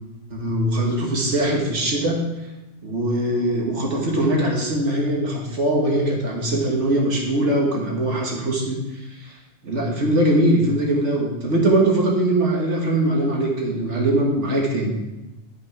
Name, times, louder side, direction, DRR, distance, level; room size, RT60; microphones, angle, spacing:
voice 1, 0.3-2.2 2.8-8.8 9.2-9.3 9.6-14.9, right 1 dB, 75° right, -2 dB, 1.9 m, -21 dB
11.5 x 5.5 x 4.7 m, 1.0 s
omnidirectional pair, 1.2 m